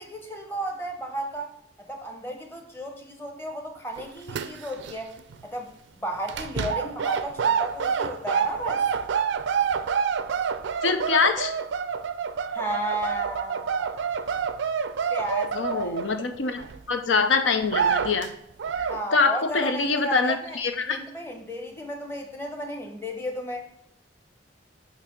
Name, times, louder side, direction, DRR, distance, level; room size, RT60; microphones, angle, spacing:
voice 1, 0.0-1.5 1.9-5.1 5.4-5.7 6.0-8.8 12.4-14.1 15.1-16.0 18.9-23.7, right 1 dB, 10° left, 3 dB, 0.9 m, -34 dB
sound 1, 4.0-4.9 5.2-5.4 6.3-16.8 17.2-17.3 17.6-18.3 18.6-19.0, right 6 dB, 75° right, 0.4 m, -27 dB
voice 2, 10.8-11.5 15.5-16.6 16.9-18.3 18.8-21.0, left 4 dB, 90° left, 8 dB, 0.7 m, -24 dB
6.7 x 2.9 x 5.2 m, 0.77 s
head